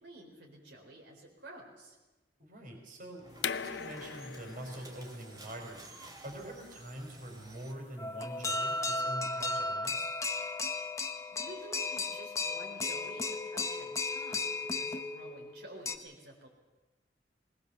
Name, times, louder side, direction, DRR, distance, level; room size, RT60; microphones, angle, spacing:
voice 1, 0.0-2.0 11.3-16.5, right 1 dB, 75° right, -1 dB, 4.1 m, -51 dB
voice 2, 2.4-10.1, right 1 dB, 50° right, 2 dB, 4.5 m, -45 dB
sound 1, 3.2-7.7, right 2 dB, 20° right, 2.6 m, -52 dB
sound 2, 3.4-9.0, left 7 dB, 75° left, 0.7 m, -42 dB
sound 3, 8.0-16.0, left 3 dB, 20° left, 0.9 m, -35 dB
20.5 x 20.0 x 6.9 m, 1.1 s
head